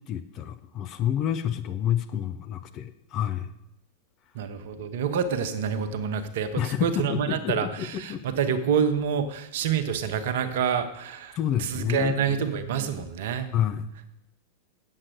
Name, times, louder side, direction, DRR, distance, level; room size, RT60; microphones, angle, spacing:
voice 1, 0.1-3.5 6.6-8.2 11.4-12.4 13.5-13.9, left 10 dB, 35° left, 9 dB, 0.6 m, -29 dB
voice 2, 4.3-13.5, right 7 dB, 55° right, 9 dB, 0.9 m, -27 dB
8.6 x 7.3 x 6.5 m, 0.81 s
figure-of-eight pair, 90°, 0 cm